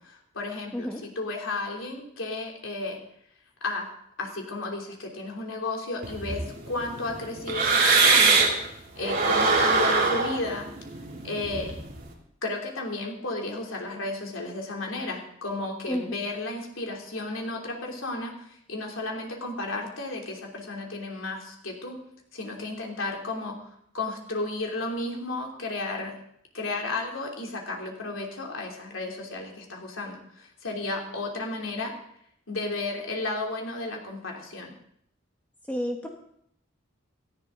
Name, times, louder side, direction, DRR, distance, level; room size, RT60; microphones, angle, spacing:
voice 1, 0.0-3.0 3.6-3.9 4.2-8.5 8.9-10.7 11.2-11.8 12.4-22.0 22.3-23.6 23.9-26.1 26.5-31.9 32.5-34.7, left 2 dB, 90° left, 0 dB, 3.2 m, -33 dB
sound 1, 6.0-8.7 9.0-12.1, right 4 dB, 45° right, 3.1 m, -23 dB
voice 2, 35.7-36.1, equal, 10° left, 1 dB, 1.3 m, -30 dB
17.5 x 14.0 x 3.9 m, 0.70 s
head